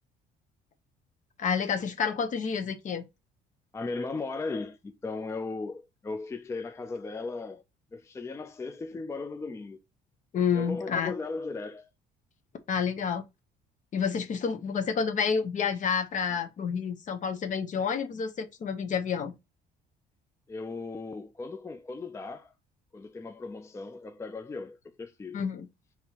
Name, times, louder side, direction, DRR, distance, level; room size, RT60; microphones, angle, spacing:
voice 1, 1.4-3.0 10.3-11.1 12.7-13.2 13.9-19.3 25.3-25.7, left 6 dB, 50° left, 0.8 m, -29 dB
voice 2, 3.7-7.6 7.9-9.8 10.5-11.9 20.5-22.5 22.9-25.4, left 3 dB, 15° left, 0.4 m, -37 dB
5.4 x 3.0 x 2.9 m
cardioid pair, 110°, 17 cm